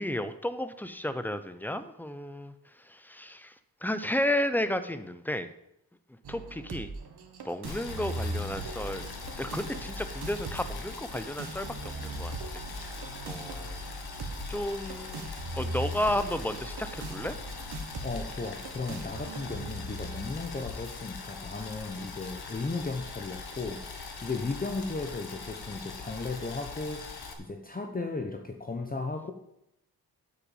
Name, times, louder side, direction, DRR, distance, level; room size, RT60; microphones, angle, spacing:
voice 1, 0.0-3.5 3.8-5.5 6.3-6.9 7.4-9.0 9.4-12.6 12.9-13.8 14.5-15.3 15.6-17.4, left 1 dB, 5° left, 11 dB, 0.8 m, -33 dB
sound 1, 6.2-20.3, right 2 dB, 80° right, 1.7 m, -40 dB
Boiling, 7.6-27.3, left 4 dB, 75° left, 1.8 m, -41 dB
voice 2, 18.0-29.3, left 3 dB, 20° left, 4 dB, 1.1 m, -35 dB
9.0 x 8.2 x 7.2 m, 0.79 s
wide cardioid pair, 125°, 38 cm